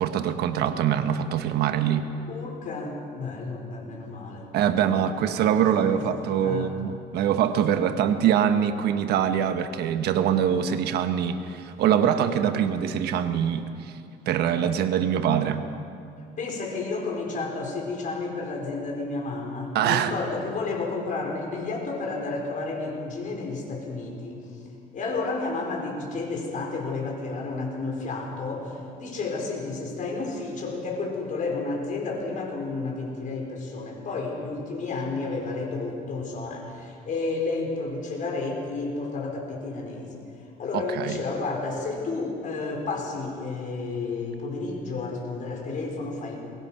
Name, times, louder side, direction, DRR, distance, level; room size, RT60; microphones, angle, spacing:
voice 1, 0.0-2.1 4.5-13.9 14.3-15.6 19.7-20.1 40.7-41.2, right 9 dB, 75° right, 8 dB, 1.3 m, -24 dB
voice 2, 2.3-4.5 4.8-5.0 5.8-6.7 16.4-24.4 24.9-40.2 40.6-46.4, left 3 dB, 50° left, 0 dB, 5.3 m, -31 dB
22.0 x 20.0 x 5.9 m, 2.4 s
cardioid pair, 110°, 17 cm